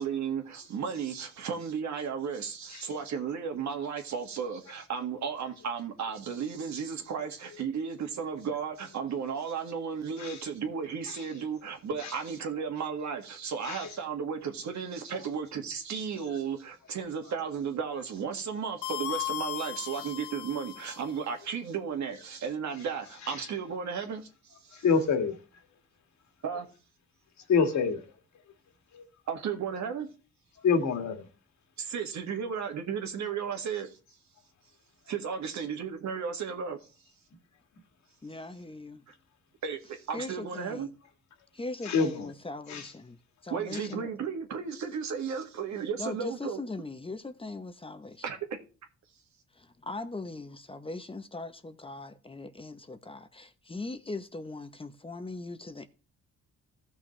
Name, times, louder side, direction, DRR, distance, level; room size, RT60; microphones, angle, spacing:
voice 1, 0.0-24.8 26.4-26.7 29.3-30.1 31.8-33.9 35.1-36.8 39.1-39.2 39.6-40.9 43.5-46.6 48.2-48.4, right 6 dB, 65° right, 2.0 m, -34 dB
sound 1, 18.8-21.2, left 13 dB, 85° left, 0.8 m, -36 dB
voice 2, 24.7-25.4 27.5-28.0 30.6-31.3 41.8-42.3 42.7-42.9, left 5 dB, 65° left, 2.0 m, -26 dB
voice 3, 38.2-39.0 40.1-40.9 41.5-43.2 43.4-44.1 46.0-48.2 49.5-55.9, left 2 dB, 20° left, 0.9 m, -40 dB
15.5 x 6.2 x 3.3 m
cardioid pair, 90°, 30 cm